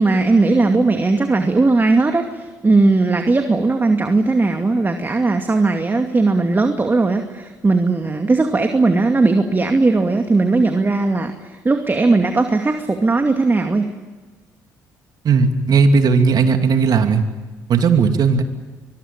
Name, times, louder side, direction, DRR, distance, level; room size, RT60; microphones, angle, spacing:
voice 1, 0.0-13.9, right 3 dB, 25° right, 5 dB, 2.4 m, -17 dB
voice 2, 15.2-17.2 17.7-18.4, right 5 dB, 50° right, 6 dB, 2.8 m, -15 dB
25.0 x 22.0 x 8.9 m, 1.3 s
hypercardioid pair, 50°, 8 cm